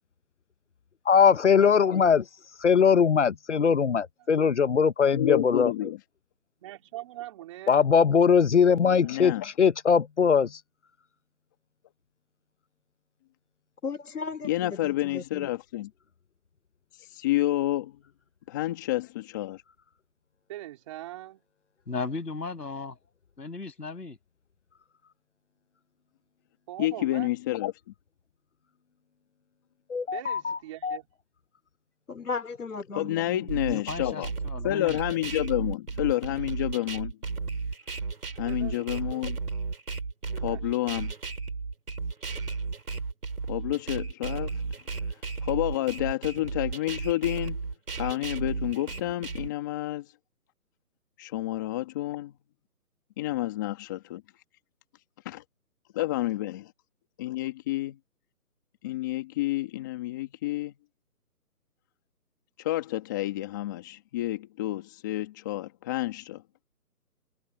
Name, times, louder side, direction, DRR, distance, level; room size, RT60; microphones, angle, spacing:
voice 1, 1.1-2.2 2.6-5.9 7.7-10.6 29.9-31.0, left 6 dB, 50° left, 0.9 m, -21 dB
voice 2, 5.1-6.0 9.0-9.4 14.4-15.9 17.0-17.9 18.5-19.6 26.8-27.7 33.0-34.3 34.6-37.1 38.4-39.4 40.4-41.1 43.5-44.6 45.4-47.6 48.0-50.0 51.2-52.3 53.2-54.2 55.2-55.4 55.9-56.7 57.2-57.9 58.8-60.7 62.6-66.4, left 15 dB, 10° left, 1.5 m, -29 dB
voice 3, 6.6-7.9 20.5-21.4 26.7-27.3 30.1-31.1 38.4-39.3 40.3-40.7, right 15 dB, 20° right, 2.9 m, -42 dB
voice 4, 13.8-15.5 32.1-33.5, left 4 dB, 70° left, 4.0 m, -36 dB
voice 5, 21.9-23.0 23.4-24.2 33.7-35.0, left 4 dB, 85° left, 6.2 m, -35 dB
sound 1, 33.5-49.5, right 4 dB, 75° right, 5.9 m, -34 dB
hypercardioid pair, 165°, 47 cm